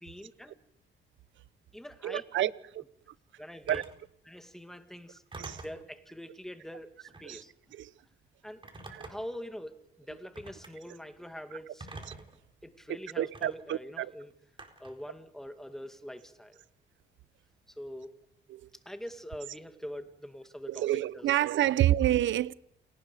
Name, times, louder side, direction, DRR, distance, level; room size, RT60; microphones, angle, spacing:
voice 1, 0.0-0.5 1.7-2.5 3.4-3.8 4.2-5.2 5.6-7.5 8.4-8.7 9.0-11.9 12.6-14.3 14.8-16.6 17.7-18.2 18.9-20.9 21.1-21.3 21.6-21.7, equal, ahead, 2.2 m, -44 dB
voice 2, 2.0-2.5 2.7-2.8 3.7-3.8 5.4-5.6 7.2-7.4 7.7-7.9 8.9-9.1 13.2-14.1 18.5-18.7 20.7-22.5, right 13 dB, 70° right, 0.8 m, -28 dB
Telephone, 3.7-4.0 5.3-5.8 7.1-7.4 8.6-9.4 10.3-10.7 11.8-12.4 13.3-13.5 14.6-15.0, right 2 dB, 25° right, 4.2 m, -45 dB
28.5 x 18.5 x 5.2 m
cardioid pair, 90°, 20 cm